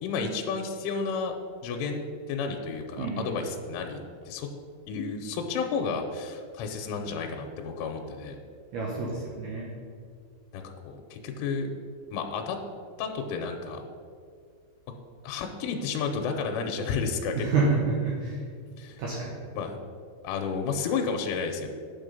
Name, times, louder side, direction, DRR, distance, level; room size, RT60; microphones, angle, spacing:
voice 1, 0.0-1.3 1.6-4.0 4.3-4.5 4.9-8.4 10.5-11.7 12.1-12.6 13.0-13.8 15.2-17.7 18.8-19.0 19.5-19.8 20.2-21.7, left 5 dB, 85° left, 3 dB, 3.1 m, -31 dB
voice 2, 3.0-3.4 8.7-9.7 17.4-18.4 19.0-19.3, right 4 dB, 75° right, -3 dB, 2.5 m, -28 dB
9.5 x 6.6 x 5.4 m, 2.1 s
omnidirectional pair, 5.8 m